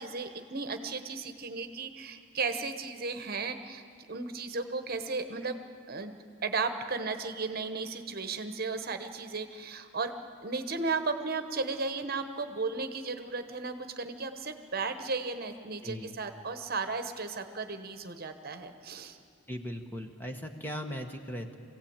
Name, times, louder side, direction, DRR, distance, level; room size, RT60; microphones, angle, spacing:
voice 1, 0.0-5.6 5.9-6.2 6.4-10.1 10.4-19.2, right 4 dB, 45° right, 8 dB, 1.1 m, -35 dB
voice 2, 15.8-16.2 19.5-21.5, equal, 10° left, 4 dB, 1.2 m, -38 dB
24.0 x 16.5 x 8.8 m, 2.4 s
head